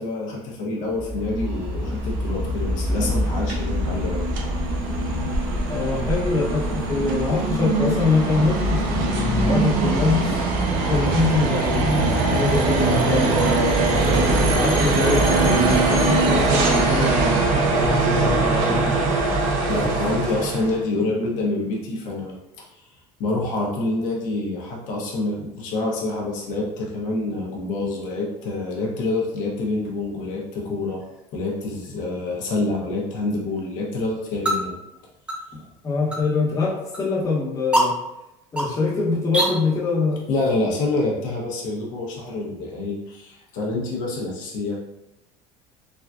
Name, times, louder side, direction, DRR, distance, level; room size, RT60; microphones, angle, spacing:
voice 1, 0.0-4.2 10.2-10.4 19.7-22.3 23.2-31.0 31.3-34.8 40.3-44.8, left 2 dB, 65° left, -2 dB, 0.7 m, -27 dB
sound 1, 0.8-8.5, left 3 dB, 50° right, 1.0 m, -33 dB
sound 2, 1.0-20.8, right 3 dB, 70° right, 0.6 m, -22 dB
voice 2, 5.7-10.2 10.9-13.8 14.5-19.1 35.5-37.9 38.5-40.2, left 3 dB, 25° left, -4 dB, 0.8 m, -24 dB
sound 3, 30.8-39.5, right 1 dB, 5° right, 0.5 m, -30 dB
3.4 x 2.3 x 2.3 m, 0.90 s
supercardioid pair, 115°, 14 cm